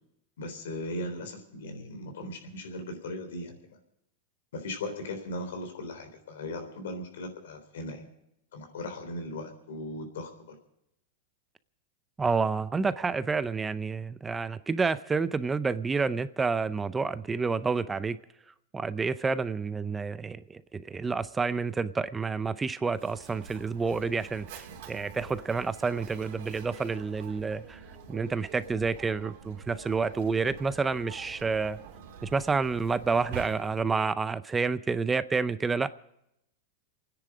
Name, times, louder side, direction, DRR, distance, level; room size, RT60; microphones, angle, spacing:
voice 1, 0.4-3.8 4.5-8.0 8.5-10.6, left 1 dB, 85° left, 6 dB, 3.7 m, -38 dB
voice 2, 12.2-18.2 18.7-27.8 28.1-31.8 32.2-35.9, right 4 dB, 15° right, 15 dB, 0.5 m, -29 dB
Mechanisms, 22.9-34.0, right 7 dB, 65° right, 3.0 m, -47 dB
29.0 x 10.0 x 4.9 m, 0.81 s
supercardioid pair, 130°, 0 cm